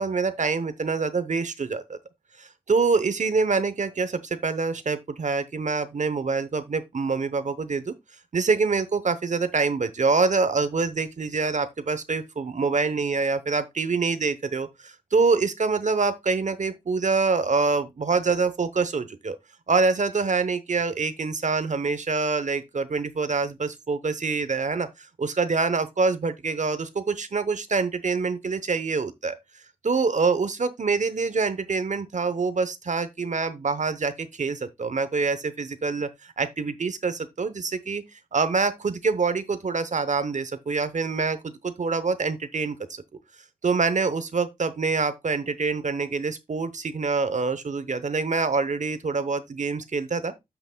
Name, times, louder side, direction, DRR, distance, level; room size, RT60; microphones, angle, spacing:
voice 1, 0.0-2.0 2.4-7.9 8.3-19.4 19.7-24.9 25.2-29.4 29.8-38.0 38.3-43.0 43.6-50.3, right 4 dB, 60° right, 0.8 m, -25 dB
12.5 x 5.9 x 2.2 m
wide cardioid pair, 80°, 14 cm